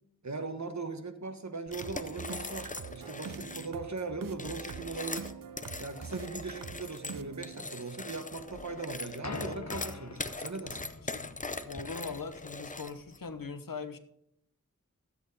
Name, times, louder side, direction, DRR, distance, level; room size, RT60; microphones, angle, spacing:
voice 1, 0.2-5.3 5.8-10.9, right 3 dB, 60° right, 8 dB, 1.1 m, -39 dB
sound 1, 1.7-3.7 4.3-13.2, left 3 dB, 25° left, 0.6 m, -41 dB
sound 2, 1.8-9.8, right 6 dB, 85° right, 0.6 m, -45 dB
sound 3, 8.5-13.4, left 4 dB, 55° left, 0.9 m, -45 dB
voice 2, 11.7-14.0, left 4 dB, 85° left, 10 dB, 0.9 m, -40 dB
13.0 x 8.2 x 4.0 m, 0.76 s
wide cardioid pair, 55°, 32 cm